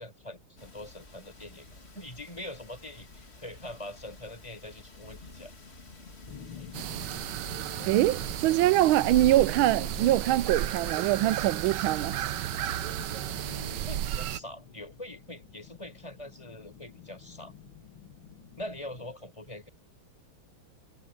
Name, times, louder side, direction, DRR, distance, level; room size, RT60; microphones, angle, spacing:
voice 1, 0.0-1.7 1.9-5.5 6.5-6.7 13.4-17.5 18.6-19.7, left 1 dB, 15° left, 6.0 m, -43 dB
sound 1, 0.6-14.0, left 3 dB, 30° left, 2.7 m, -51 dB
sound 2, 6.3-19.1, left 8 dB, 85° left, 2.8 m, -49 dB
sound 3, 6.7-14.4, right 12 dB, 70° right, 1.2 m, -33 dB
voice 2, 7.8-12.2, right 14 dB, 85° right, 1.4 m, -24 dB
omnidirectional pair, 2.2 m